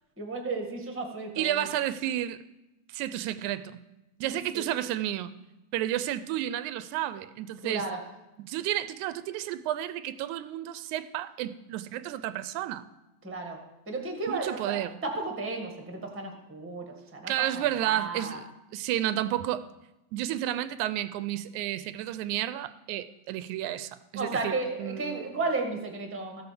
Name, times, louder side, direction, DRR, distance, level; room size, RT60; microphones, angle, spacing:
voice 1, 0.2-1.7 4.5-4.6 7.6-8.0 13.2-13.6 13.9-16.8 17.1-18.4 24.1-26.4, right 3 dB, 5° right, 1.2 m, -33 dB
voice 2, 1.4-2.5 2.9-3.8 4.2-5.3 5.7-7.9 8.4-12.9 14.3-15.0 17.3-18.5 18.7-19.7 20.1-25.3, right 13 dB, 85° right, 2.0 m, -31 dB
14.5 x 6.9 x 6.8 m
omnidirectional pair, 3.4 m